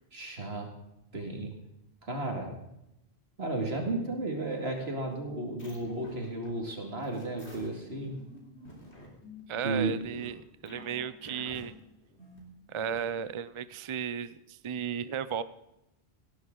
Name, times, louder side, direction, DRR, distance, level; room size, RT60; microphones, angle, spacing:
voice 1, 0.1-0.7 1.1-1.5 2.0-2.5 3.4-8.2 9.6-9.9, right 2 dB, 65° right, 2 dB, 2.5 m, -33 dB
sound 1, 4.5-13.2, left 2 dB, 75° left, 3.7 m, -50 dB
voice 2, 9.5-11.7 12.7-15.4, right 7 dB, 45° right, 15 dB, 0.4 m, -34 dB
18.0 x 11.0 x 3.8 m, 0.86 s
omnidirectional pair, 1.1 m